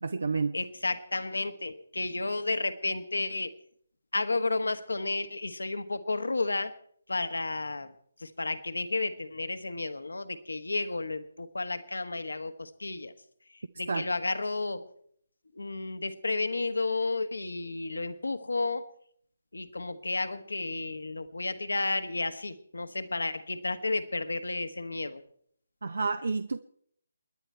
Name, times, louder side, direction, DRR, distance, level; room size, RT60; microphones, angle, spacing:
voice 1, 0.0-0.5 13.9-14.0 25.8-26.6, right 4 dB, 70° right, 13 dB, 0.6 m, -29 dB
voice 2, 0.5-3.5 4.1-6.7 7.1-7.9 8.2-13.1 13.5-14.9 15.5-18.9 19.5-25.2, left 3 dB, 80° left, 11 dB, 1.3 m, -32 dB
29.0 x 10.5 x 4.4 m, 0.66 s
figure-of-eight pair, 150°, 0 cm